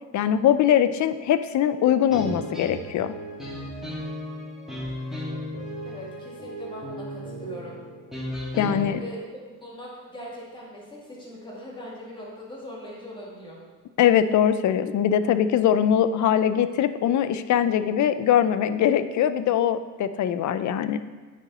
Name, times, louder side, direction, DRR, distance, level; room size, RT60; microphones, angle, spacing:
voice 1, 0.1-3.1 8.6-9.0 14.0-21.0, left 9 dB, 65° left, 12 dB, 0.5 m, -22 dB
sound 1, 2.1-8.9, equal, ahead, 1.4 m, -35 dB
voice 2, 5.8-7.8 8.7-13.6, equal, 15° left, -5 dB, 1.9 m, -40 dB
9.0 x 4.2 x 4.0 m, 1.4 s
cardioid pair, 120°, 32 cm